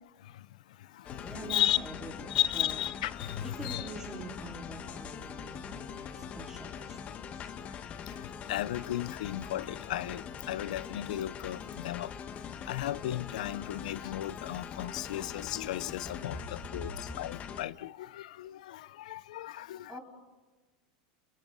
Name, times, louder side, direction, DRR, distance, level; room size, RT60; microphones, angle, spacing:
voice 1, 0.2-1.8 2.3-3.9 7.6-12.1 12.7-20.0, left 13 dB, 85° left, 0.6 m, -35 dB
sound 1, 1.0-17.7, left 7 dB, 35° left, 1.4 m, -43 dB
voice 2, 1.2-2.8 3.4-7.0 7.3-7.6 16.7-16.8 19.9-20.0, right 2 dB, 5° right, 4.6 m, -45 dB
28.5 x 28.5 x 4.0 m
supercardioid pair, 125°, 4 cm